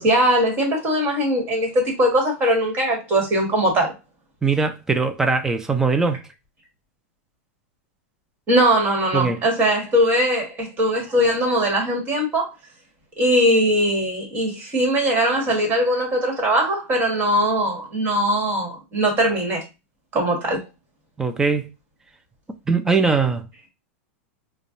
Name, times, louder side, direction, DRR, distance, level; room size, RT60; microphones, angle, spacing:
voice 1, 0.0-3.9 8.5-12.5 13.2-19.6 20.1-20.6, equal, 25° right, 1.5 m, -20 dB
voice 2, 4.4-6.2 9.1-9.4 21.2-21.7 22.7-23.4, right 4 dB, 5° right, 0.4 m, -21 dB
5.1 x 2.2 x 2.5 m
supercardioid pair, 155°, 8 cm